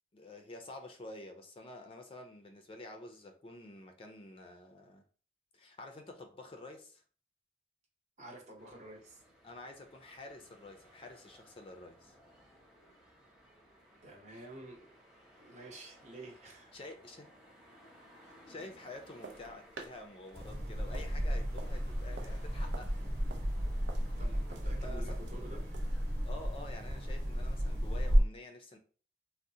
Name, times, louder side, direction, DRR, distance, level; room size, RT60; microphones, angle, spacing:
voice 1, 0.1-5.0 5.5-7.0 9.4-12.2 14.3-14.4 16.7-17.3 18.5-23.0 24.8-25.2 26.2-28.8, left 2 dB, 30° left, 5 dB, 0.4 m, -49 dB
voice 2, 8.2-9.2 14.0-14.9 15.4-16.7 18.2-18.3 24.1-25.6, right 1 dB, 40° right, 0 dB, 0.8 m, -50 dB
sound 1, 8.6-28.0, equal, 5° right, 0.7 m, -61 dB
sound 2, 19.2-26.0, right 4 dB, 85° right, 0.5 m, -52 dB
sound 3, 20.3-28.2, equal, 65° right, 1.0 m, -33 dB
3.6 x 2.0 x 2.7 m, 0.41 s
head